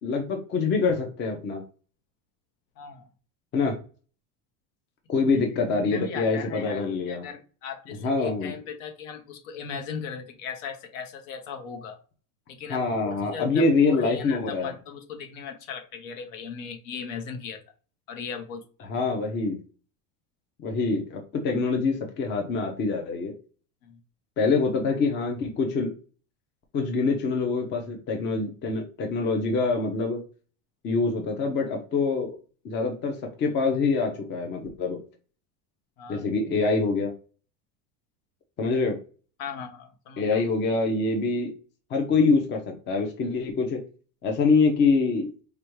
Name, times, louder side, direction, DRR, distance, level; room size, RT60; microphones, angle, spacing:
voice 1, 0.0-1.6 3.5-3.8 5.1-7.2 8.0-8.5 12.7-14.7 18.9-19.6 20.6-23.3 24.4-25.9 26.7-30.2 30.8-32.3 32.6-35.0 36.1-37.1 38.6-39.0 40.2-41.5 41.9-43.8 44.2-45.3, left 4 dB, 25° left, 3 dB, 0.6 m, -25 dB
voice 2, 2.8-3.1 5.5-12.0 12.5-17.6 18.1-18.9 23.8-24.0 36.0-36.3 39.4-40.4, left 6 dB, 65° left, 5 dB, 1.1 m, -37 dB
5.0 x 2.3 x 3.0 m, 0.38 s
supercardioid pair, 155°, 43 cm